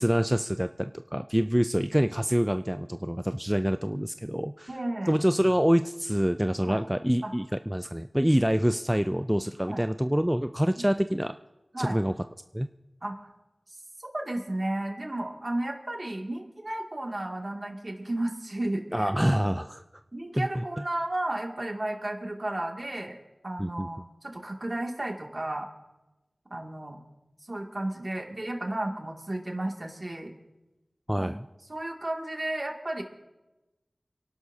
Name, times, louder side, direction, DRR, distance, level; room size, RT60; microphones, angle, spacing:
voice 1, 0.0-4.7 5.1-11.4 11.8-12.1 12.5-12.7 18.9-19.8 20.3-20.6 23.6-23.9 31.1-31.5, equal, 10° right, 9 dB, 0.4 m, -26 dB
voice 2, 4.7-5.1 6.6-6.8 7.2-7.3 9.7-9.8 11.7-12.0 13.0-13.3 14.1-19.1 20.1-23.2 23.4-25.7 26.5-27.0 27.5-30.3 31.2-31.3 31.7-33.0, right 1 dB, 45° right, 1 dB, 2.4 m, -33 dB
28.5 x 11.5 x 2.8 m, 1.0 s
wide cardioid pair, 45°, 0 cm